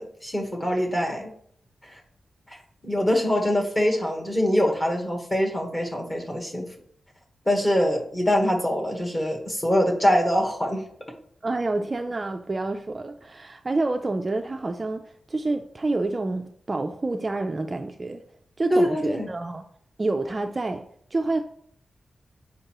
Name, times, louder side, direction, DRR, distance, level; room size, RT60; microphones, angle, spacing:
voice 1, 0.0-1.3 1.9-2.0 2.8-6.7 7.5-10.8 18.7-19.3, equal, 15° left, 1.2 m, -24 dB
voice 2, 11.4-15.0 15.3-18.2 18.6-19.6 20.0-20.8 21.1-21.4, right 2 dB, 25° right, 0.3 m, -28 dB
7.8 x 5.3 x 2.9 m
wide cardioid pair, 175°, 0 cm